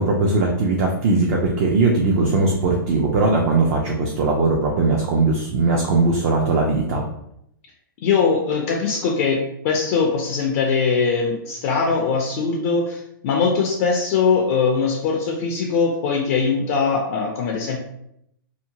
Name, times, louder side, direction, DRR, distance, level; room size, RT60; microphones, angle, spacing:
voice 1, 0.0-7.0, right 3 dB, 35° right, 0 dB, 0.4 m, -19 dB
voice 2, 8.0-17.8, left 5 dB, 40° left, 0 dB, 0.4 m, -21 dB
2.7 x 2.1 x 2.7 m, 0.76 s
hypercardioid pair, 155°, 12 cm